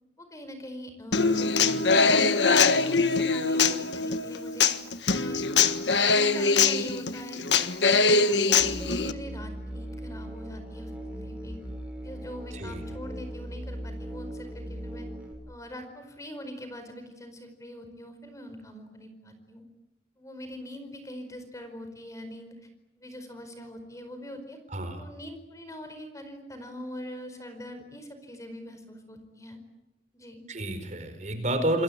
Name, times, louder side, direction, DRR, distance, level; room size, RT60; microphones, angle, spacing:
voice 1, 0.2-2.3 2.8-4.7 5.1-5.4 6.0-7.4 7.8-11.6 12.0-15.1 15.5-19.6 20.2-22.5 23.0-24.6 25.0-29.6 30.1-30.4, equal, 20° left, 7 dB, 4.9 m, -42 dB
Human voice / Acoustic guitar, 1.1-9.1, left 4 dB, 85° left, 1.5 m, -23 dB
Musical instrument, 8.6-15.3, right 1 dB, 5° right, 6.5 m, -38 dB
voice 2, 24.7-25.0 30.5-31.8, right 1 dB, 40° right, 8 dB, 4.8 m, -29 dB
29.0 x 22.0 x 8.8 m, 0.97 s
head